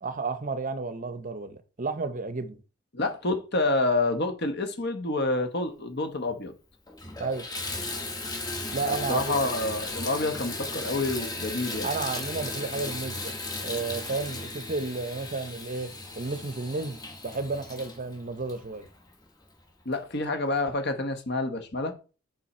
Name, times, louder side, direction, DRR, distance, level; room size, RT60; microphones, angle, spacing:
voice 1, 0.0-2.6 7.2-7.5 8.7-9.4 11.8-13.3 13.6-18.9, right 3 dB, 40° right, 0.7 m, -32 dB
voice 2, 2.9-6.5 8.8-11.9 19.8-21.9, left 2 dB, 55° left, 1.1 m, -28 dB
Water tap faucet / Bathtub (filling or washing), 6.3-6.4 6.9-19.3 19.9-20.0 20.5-20.6, left 2 dB, 20° left, 1.2 m, -36 dB
5.6 x 5.5 x 4.2 m
head